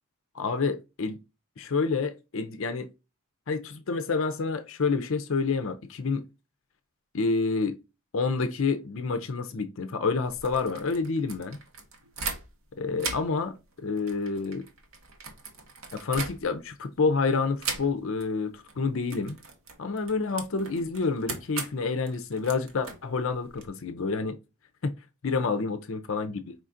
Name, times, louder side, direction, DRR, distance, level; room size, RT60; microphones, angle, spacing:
voice 1, 0.3-1.2 1.6-2.9 3.5-6.2 7.1-7.8 8.1-11.6 12.8-14.7 15.9-19.4 19.8-24.4 24.8-24.9 25.2-26.5, left 4 dB, 65° left, 0.5 m, -28 dB
sound 1, 10.2-12.7 13.0-16.8 17.6-18.3 18.5-18.8 19.1-23.7, right 4 dB, 70° right, 1.1 m, -39 dB
5.0 x 3.7 x 2.5 m
head